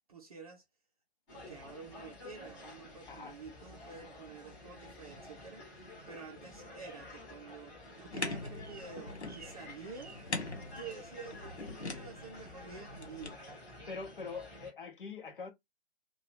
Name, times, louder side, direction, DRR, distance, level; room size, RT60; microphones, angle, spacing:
voice 1, 0.1-0.6 1.3-10.2 10.7-13.5, right 5 dB, 35° right, 0.6 m, -49 dB
sound 1, 1.3-14.7, left 2 dB, 15° left, 1.0 m, -51 dB
sound 2, 7.4-8.2 8.6-9.0 9.3-9.6 9.9-10.3 10.7-11.1, right 6 dB, 80° right, 0.5 m, -55 dB
sound 3, 8.1-13.4, left 3 dB, 90° left, 0.9 m, -42 dB
voice 2, 13.9-15.5, left 4 dB, 55° left, 0.8 m, -43 dB
2.8 x 2.3 x 3.2 m
figure-of-eight pair, 135°, 33 cm